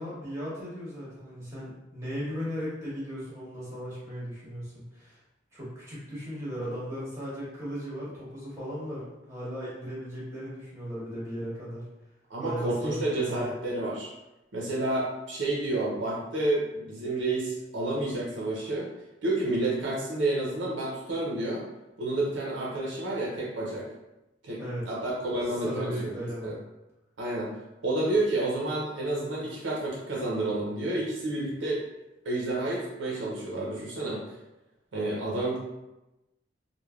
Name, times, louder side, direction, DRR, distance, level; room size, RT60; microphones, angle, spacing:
voice 1, 0.0-5.2 5.5-11.8 12.4-13.6 24.6-24.8 25.5-26.5, equal, 15° right, -8 dB, 0.8 m, -36 dB
voice 2, 12.3-14.1 14.5-18.9 19.2-21.6 22.0-23.9 24.4-26.1 26.4-26.5 27.2-27.5 27.8-31.8 32.2-34.2 34.9-35.6, right 2 dB, 75° right, -4 dB, 0.5 m, -30 dB
3.1 x 2.1 x 2.3 m, 0.98 s
head